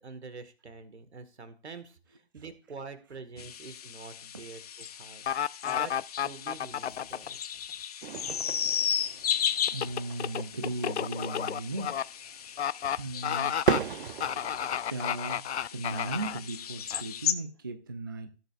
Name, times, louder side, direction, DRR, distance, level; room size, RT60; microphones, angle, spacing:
voice 1, 0.0-5.3 5.7-5.9 6.2-7.4, right 4 dB, 75° right, 1.8 m, -46 dB
sound 1, 3.4-17.3, left 9 dB, 35° left, 0.7 m, -35 dB
sound 2, 5.3-7.3 9.7-12.0 12.6-13.0 13.2-13.8 14.2-16.4 16.9-17.0, left 9 dB, 80° left, 0.5 m, -31 dB
sound 3, 8.0-14.7, right 7 dB, 50° right, 0.7 m, -36 dB
voice 2, 9.7-12.0 13.0-13.6 14.9-18.3, right 2 dB, 20° right, 0.4 m, -37 dB
16.5 x 7.7 x 2.5 m
hypercardioid pair, 150°, 33 cm